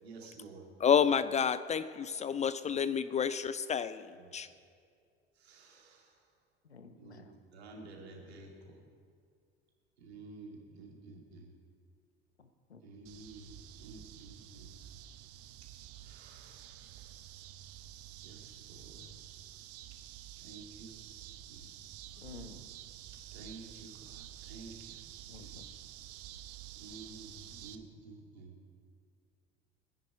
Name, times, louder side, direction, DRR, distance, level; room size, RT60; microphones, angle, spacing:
voice 1, 0.0-0.7 4.1-4.3 5.3-6.3 7.0-8.8 10.0-11.5 12.8-14.7 16.0-17.2 18.2-19.1 20.4-21.0 21.5-21.7 23.3-25.0 25.3-25.6 26.8-28.6, right 3 dB, 75° right, 0 dB, 2.5 m, -52 dB
voice 2, 0.8-4.1 4.3-4.5, left 7 dB, 20° left, 14 dB, 0.4 m, -29 dB
voice 3, 6.7-7.2 12.7-12.8 22.2-22.6 25.3-25.6, left 4 dB, 85° left, 9 dB, 1.1 m, -50 dB
sound 1, 13.1-27.8, right 12 dB, 45° right, 0.9 m, -50 dB
20.0 x 10.5 x 4.8 m, 2.3 s
figure-of-eight pair, 65°, 32 cm